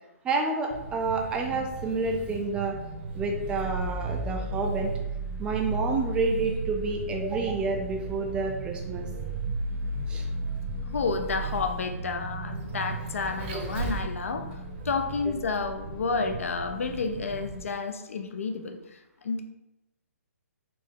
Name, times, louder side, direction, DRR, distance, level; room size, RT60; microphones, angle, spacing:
voice 1, 0.2-2.8 3.1-4.9 5.4-9.1 10.1-10.2 13.5-13.6, right 3 dB, 10° right, 2 dB, 0.3 m, -29 dB
Vehicle, 0.7-17.6, right 2 dB, 40° right, 0.8 m, -35 dB
voice 2, 10.9-14.5 14.8-19.4, left 4 dB, 60° left, 7 dB, 0.5 m, -30 dB
4.2 x 2.7 x 3.5 m, 0.92 s
figure-of-eight pair, 130°, 8 cm